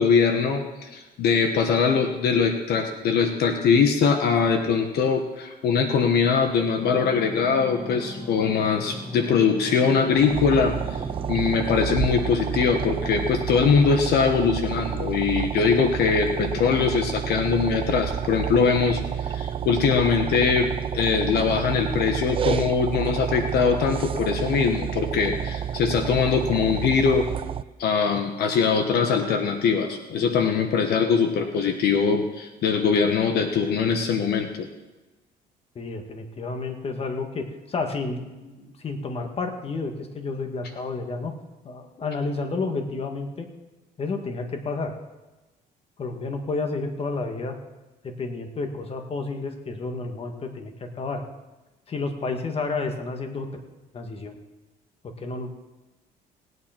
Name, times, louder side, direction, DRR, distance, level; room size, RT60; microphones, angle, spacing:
voice 1, 0.0-27.3 27.8-34.7, left 5 dB, 70° left, 5 dB, 1.2 m, -22 dB
sound 1, 6.8-13.9, equal, ahead, 2.2 m, -37 dB
sound 2, 10.1-27.6, right 9 dB, 30° right, 0.4 m, -30 dB
voice 2, 35.8-41.3 41.6-43.5 44.0-45.0 46.0-47.6 48.0-51.2 51.9-53.5 53.9-54.4 55.0-55.5, left 3 dB, 35° left, 5 dB, 1.8 m, -31 dB
19.0 x 9.3 x 4.5 m, 1.1 s
cardioid pair, 110°, 17 cm